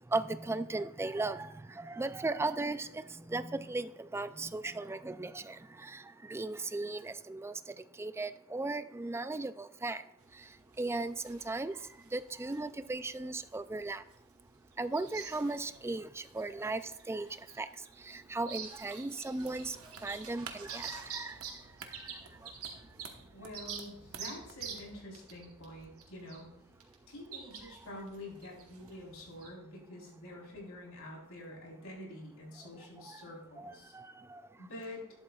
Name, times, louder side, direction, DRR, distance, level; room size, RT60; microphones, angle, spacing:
voice 1, 0.1-1.5 1.8-3.0 3.3-5.6 5.8-6.0 6.3-7.5 8.0-10.0 10.8-11.7 12.1-14.0 14.8-16.8 17.1-17.3 17.6-17.7 18.1-19.8 20.0-21.3 33.6-34.1, right 2 dB, 10° right, 12 dB, 0.3 m, -36 dB
sound 1, 10.2-29.5, right 7 dB, 90° right, 2.3 m, -48 dB
sound 2, 19.3-25.0, right 5 dB, 70° right, 1.1 m, -52 dB
voice 2, 23.3-26.5 27.1-33.9 34.6-35.0, left 1 dB, 75° left, -2 dB, 4.0 m, -47 dB
12.0 x 11.5 x 2.4 m, 0.78 s
head